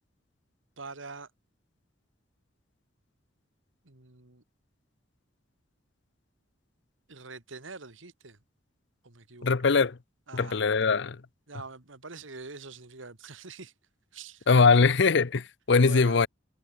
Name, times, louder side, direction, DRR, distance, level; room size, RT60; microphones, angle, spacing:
voice 1, 0.8-1.3 3.8-4.4 7.1-8.4 9.0-9.5 10.3-10.6 11.5-13.7 14.1-14.9 15.8-16.3, right 4 dB, 90° right, 2.3 m, -45 dB
voice 2, 9.4-10.0 10.3-11.2 14.5-16.3, left 4 dB, 65° left, 0.7 m, -21 dB
head